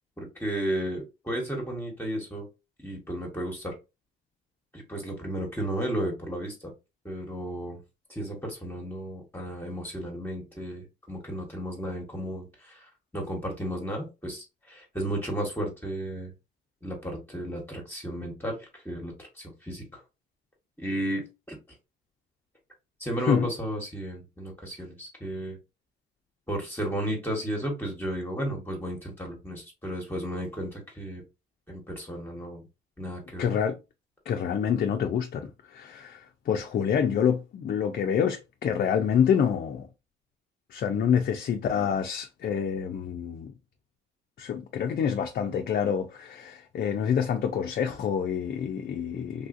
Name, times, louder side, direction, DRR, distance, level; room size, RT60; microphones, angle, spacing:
voice 1, 0.2-2.5 2.8-3.7 4.7-6.7 7.0-7.8 8.1-16.3 16.8-20.0 20.8-21.5 23.0-25.6 26.5-31.2 31.7-32.7 33.0-33.5, right 1 dB, 10° left, 1.1 m, -34 dB
voice 2, 33.4-33.8 34.3-39.9 40.7-43.5 44.4-49.5, left 7 dB, 50° left, 0.4 m, -27 dB
3.3 x 2.4 x 2.5 m
cardioid pair, 90°, 20 cm